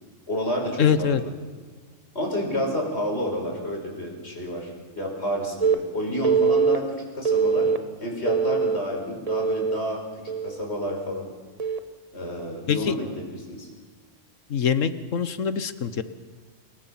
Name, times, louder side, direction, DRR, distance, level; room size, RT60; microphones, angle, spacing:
voice 1, 0.3-1.3 2.1-7.7 8.0-11.3 12.1-13.7, equal, 55° left, 1 dB, 5.7 m, -30 dB
voice 2, 0.8-1.2 12.7-12.9 14.5-16.0, left 7 dB, 75° left, 12 dB, 1.5 m, -23 dB
Telephone, 5.6-5.7 6.2-6.8 7.2-7.8 8.3-8.8 9.3-9.8 10.3-10.6 11.6-11.8, right 6 dB, 30° right, 1.1 m, -22 dB
28.0 x 21.0 x 5.9 m, 1.5 s
omnidirectional pair, 1.3 m